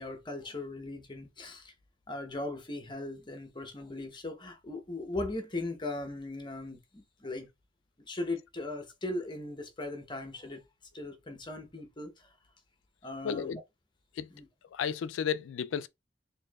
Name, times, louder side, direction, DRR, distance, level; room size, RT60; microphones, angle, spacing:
voice 1, 0.0-1.7 2.1-7.5 8.0-10.6 10.9-12.3 13.0-13.6 14.3-14.5, left 2 dB, 25° left, 0.8 m, -38 dB
voice 2, 13.2-13.6 14.1-14.3 14.7-15.9, left 7 dB, 80° left, 0.3 m, -33 dB
4.4 x 2.7 x 2.3 m
head